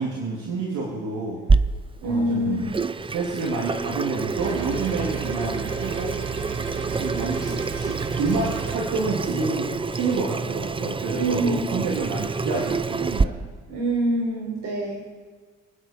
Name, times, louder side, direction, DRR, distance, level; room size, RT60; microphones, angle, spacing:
voice 1, 0.0-1.4 2.0-2.7 3.1-6.1 6.6-13.4, right 3 dB, 80° right, -3 dB, 3.0 m, -29 dB
Water tap faucet / Sink (filling or washing), 1.5-13.2, right 4 dB, 15° right, 0.5 m, -27 dB
voice 2, 2.0-2.8 11.1-11.8 13.7-15.0, right 1 dB, 60° right, -1 dB, 5.8 m, -25 dB
sound 1, 4.4-8.8, right 8 dB, 40° right, 1.6 m, -35 dB
27.0 x 9.8 x 4.6 m, 1.4 s
cardioid pair, 90°, 30 cm